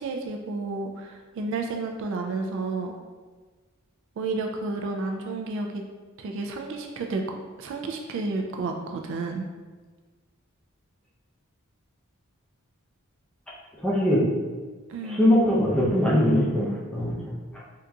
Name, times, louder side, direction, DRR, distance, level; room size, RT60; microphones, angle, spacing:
voice 1, 0.0-3.0 4.2-5.8 6.2-9.5 14.9-15.2, right 3 dB, 60° right, 3 dB, 0.3 m, -31 dB
voice 2, 13.8-14.2 15.1-17.1, left 1 dB, 5° left, -6 dB, 0.6 m, -21 dB
3.7 x 2.8 x 2.3 m, 1.4 s
head